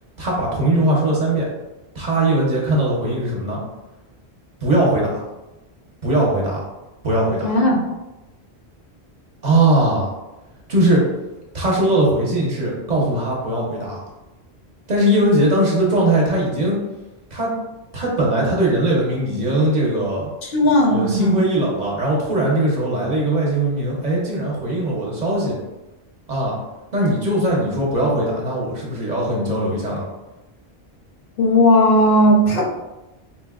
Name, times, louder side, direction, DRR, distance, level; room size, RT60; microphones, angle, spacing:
voice 1, 0.2-1.5 1.9-3.6 4.6-5.2 6.0-6.6 7.0-7.5 9.4-10.1 10.7-11.0 11.5-14.0 14.9-16.8 17.3-17.5 17.9-20.3 20.9-25.6 26.3-26.6 26.9-30.0, right 1 dB, 50° right, -4 dB, 0.7 m, -20 dB
voice 2, 7.4-7.9 20.4-21.4 31.4-32.7, left 1 dB, 65° left, -1 dB, 0.7 m, -16 dB
4.0 x 2.1 x 2.3 m, 1.0 s
omnidirectional pair, 1.1 m